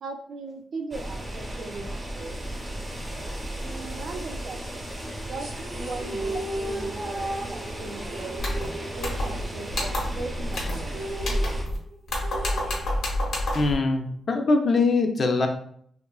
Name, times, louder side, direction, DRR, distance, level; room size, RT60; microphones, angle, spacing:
voice 1, 0.0-2.3 3.6-5.0 5.3-8.5 9.0-11.0, right 3 dB, 70° right, 4 dB, 0.4 m, -38 dB
sound 1, 0.9-11.6, right 1 dB, 20° right, 0.6 m, -35 dB
sound 2, 5.4-10.1 10.3-10.4 10.7-13.4, right 1 dB, 85° right, 0.8 m, -36 dB
sound 3, 8.4-8.7 9.0-9.4 9.7-10.2 10.5-10.9 11.2-11.8 12.1-13.7, left 1 dB, 85° left, 0.8 m, -28 dB
voice 2, 13.5-15.5, left 3 dB, 50° left, 5 dB, 0.4 m, -22 dB
2.8 x 2.4 x 2.3 m, 0.63 s
wide cardioid pair, 120°, 0 cm